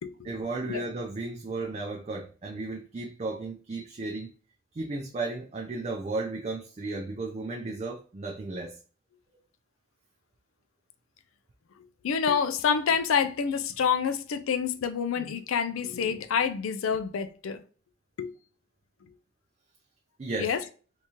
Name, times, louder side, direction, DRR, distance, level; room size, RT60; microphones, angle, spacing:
voice 1, 0.2-4.3 4.7-8.8 20.2-20.5, right 3 dB, 30° right, 0.4 m, -34 dB
voice 2, 12.0-17.6 18.2-18.3 20.4-20.6, left 6 dB, 90° left, 0.4 m, -27 dB
3.5 x 2.8 x 2.8 m
head